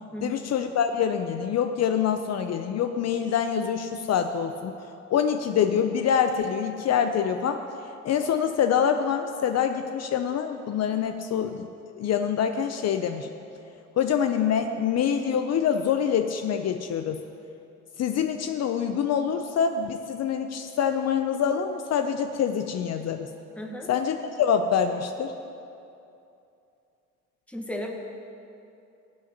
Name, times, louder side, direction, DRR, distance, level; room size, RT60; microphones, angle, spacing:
voice 1, 0.2-4.7 5.1-7.6 8.0-13.3 14.0-17.2 18.0-23.3 23.9-25.4, left 8 dB, 60° left, 7 dB, 0.5 m, -25 dB
voice 2, 23.6-23.9 27.5-27.9, equal, 5° left, 1 dB, 1.3 m, -34 dB
18.0 x 7.6 x 2.9 m, 2.7 s
cardioid pair, 90°, 30 cm